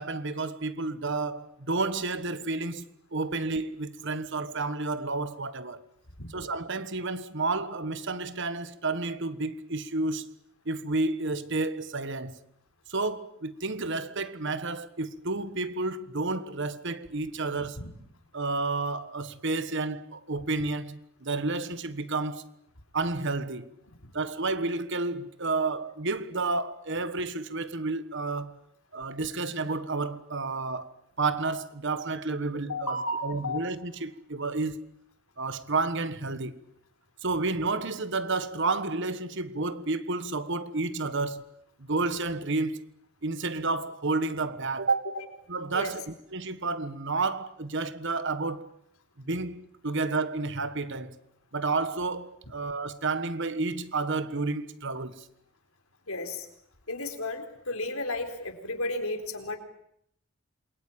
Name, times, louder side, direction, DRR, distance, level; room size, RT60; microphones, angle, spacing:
voice 1, 0.0-5.8 6.3-10.3 10.6-12.4 12.9-17.8 18.3-22.5 22.9-23.7 24.1-28.6 28.9-33.0 33.2-34.8 35.4-36.6 37.2-41.5 41.8-42.8 43.2-45.1 45.5-48.7 49.3-51.1 51.5-55.3, right 3 dB, 55° right, 1.4 m, -31 dB
voice 2, 32.7-33.6 45.7-45.9 56.1-56.5 56.9-59.6, left 2 dB, 70° left, 4.2 m, -33 dB
28.0 x 22.5 x 8.8 m
head